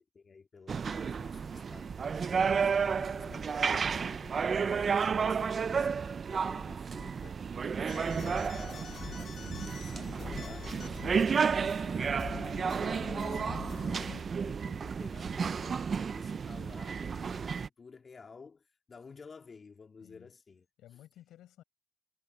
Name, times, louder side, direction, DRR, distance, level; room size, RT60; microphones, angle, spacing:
voice 1, 0.1-2.8 3.1-3.5 4.0-20.7, left 5 dB, 40° left, 2.1 m, -53 dB
sound 1, 0.7-17.7, right 6 dB, 45° right, 0.5 m, -32 dB
voice 2, 2.8-3.6 20.0-20.3 20.8-21.6, left 13 dB, 85° left, 5.2 m, -57 dB
sound 2, 7.9-14.2, left 8 dB, 60° left, 2.1 m, -45 dB
cardioid pair, 90°, 0 cm